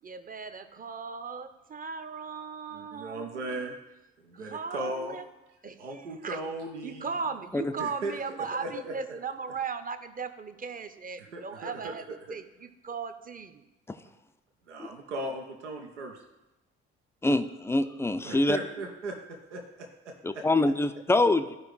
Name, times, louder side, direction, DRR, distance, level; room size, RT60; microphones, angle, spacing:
voice 1, 0.0-3.5 4.3-5.2 5.6-6.4 6.8-12.0 12.3-13.6, right 5 dB, 25° right, 11 dB, 0.7 m, -37 dB
voice 2, 2.7-3.8 4.2-5.2 5.8-7.1 7.8-8.2 8.6-8.9 11.2-11.9 14.7-16.2 18.2-19.1 19.5-19.6 20.3-20.4 21.0-21.1, right 2 dB, 85° right, 2 dB, 0.7 m, -37 dB
voice 3, 17.2-18.6 20.2-21.6, left 2 dB, 5° left, 10 dB, 0.4 m, -25 dB
13.5 x 5.0 x 3.1 m, 0.99 s
figure-of-eight pair, 40°, 35 cm